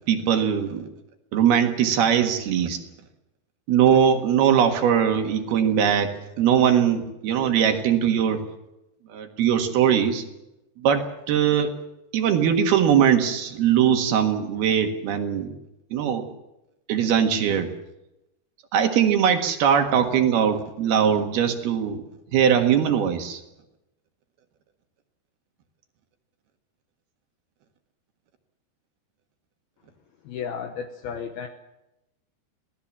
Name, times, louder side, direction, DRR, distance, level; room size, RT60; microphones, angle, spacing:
voice 1, 0.1-0.9 1.3-2.8 3.7-8.4 9.1-10.2 10.8-11.7 12.1-15.6 15.9-16.3 16.9-17.7 18.7-22.0 22.3-23.4, right 8 dB, 70° right, 6 dB, 3.5 m, -21 dB
voice 2, 30.3-31.5, left 7 dB, 70° left, 6 dB, 2.8 m, -33 dB
26.0 x 18.0 x 7.4 m, 0.92 s
omnidirectional pair, 4.9 m